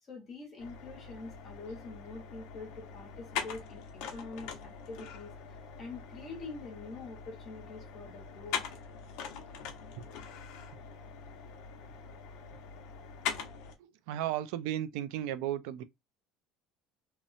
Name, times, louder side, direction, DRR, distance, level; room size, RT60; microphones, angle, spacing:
voice 1, 0.0-8.6, left 3 dB, 25° left, 0.9 m, -45 dB
sound 1, 0.6-13.7, left 7 dB, 65° left, 0.7 m, -42 dB
voice 2, 13.8-15.8, right 12 dB, 80° right, 0.3 m, -35 dB
2.8 x 2.0 x 2.4 m
cardioid pair, 170°, 0 cm